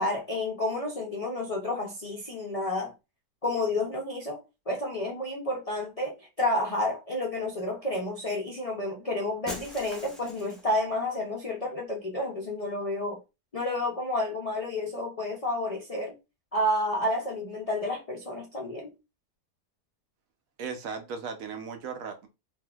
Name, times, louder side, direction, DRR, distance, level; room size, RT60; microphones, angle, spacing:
voice 1, 0.0-2.9 3.4-13.2 13.5-16.2 16.5-18.9, left 1 dB, 70° left, 0.3 m, -30 dB
Shatter, 9.5-10.8, left 1 dB, ahead, 0.4 m, -41 dB
voice 2, 20.6-22.3, right 5 dB, 70° right, 1.0 m, -36 dB
3.6 x 2.6 x 2.3 m
omnidirectional pair, 1.7 m